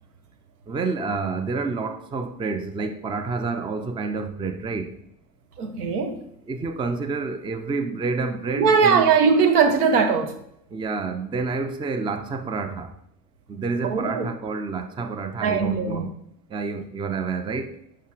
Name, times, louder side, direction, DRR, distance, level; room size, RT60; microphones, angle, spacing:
voice 1, 0.7-5.0 6.5-9.2 10.7-12.9 13.5-16.1 16.5-17.8, right 4 dB, 10° right, 0.5 m, -29 dB
voice 2, 5.6-6.2 8.5-10.4 13.8-14.3 15.4-16.0, right 5 dB, 70° right, 1.4 m, -20 dB
8.1 x 5.7 x 4.7 m
hypercardioid pair, 85°, 46 cm